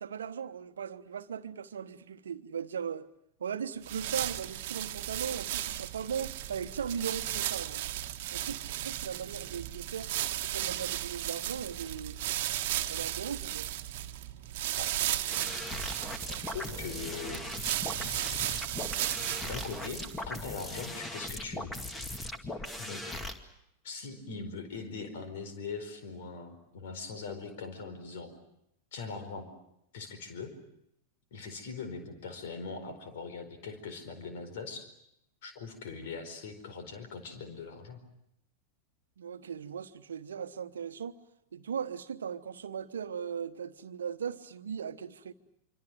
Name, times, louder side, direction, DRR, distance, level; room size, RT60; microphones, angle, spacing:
voice 1, 0.0-3.1 3.4-7.8 8.3-10.1 10.4-12.2 12.9-13.7 39.2-41.2 41.5-45.3, right 7 dB, 65° right, 12 dB, 1.2 m, -38 dB
sound 1, 3.8-20.4, right 13 dB, 50° right, 1.4 m, -35 dB
sound 2, 15.3-23.3, left 1 dB, 15° left, 2.3 m, -39 dB
voice 2, 16.3-17.4 19.4-21.7 22.8-23.2 23.8-28.3 28.9-29.5 29.9-30.5 31.3-34.9 35.4-38.0, left 4 dB, 55° left, 9 dB, 4.6 m, -41 dB
26.0 x 25.5 x 7.9 m, 0.80 s
figure-of-eight pair, 90°, 0 cm